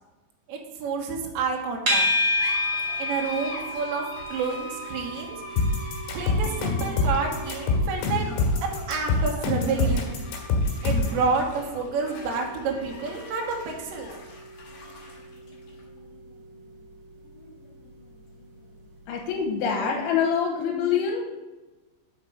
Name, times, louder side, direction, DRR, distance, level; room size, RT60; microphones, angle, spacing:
voice 1, 0.5-2.1 3.0-4.0 4.3-5.4 6.1-8.3 8.6-10.2 10.8-14.1, right 5 dB, 75° right, 0 dB, 2.1 m, -29 dB
sound 1, 1.9-18.9, left 2 dB, 55° left, 2.8 m, -44 dB
sound 2, 1.9-19.1, left 1 dB, 40° right, 1.9 m, -33 dB
sound 3, 5.6-11.2, left 3 dB, 75° left, 3.5 m, -24 dB
voice 2, 19.1-21.4, left 6 dB, 90° left, 0 dB, 3.2 m, -25 dB
5.9 x 5.4 x 6.4 m, 1.1 s
omnidirectional pair, 5.3 m